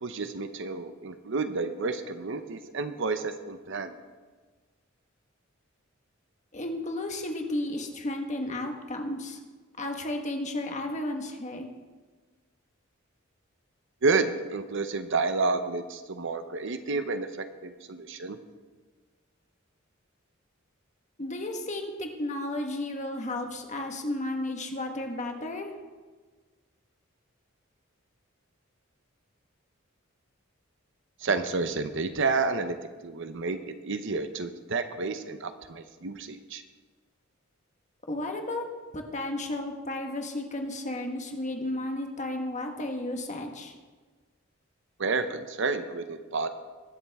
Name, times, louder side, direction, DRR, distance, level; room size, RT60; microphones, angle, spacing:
voice 1, 0.0-3.9 14.0-18.4 31.2-32.8 33.0-33.6 33.8-36.6 45.0-46.5, right 3 dB, 65° right, 9 dB, 0.7 m, -30 dB
voice 2, 6.5-9.4 9.8-11.7 21.2-25.7 38.1-38.6 38.9-43.7, left 1 dB, 35° left, 3 dB, 1.4 m, -33 dB
21.5 x 7.4 x 3.5 m, 1.4 s
head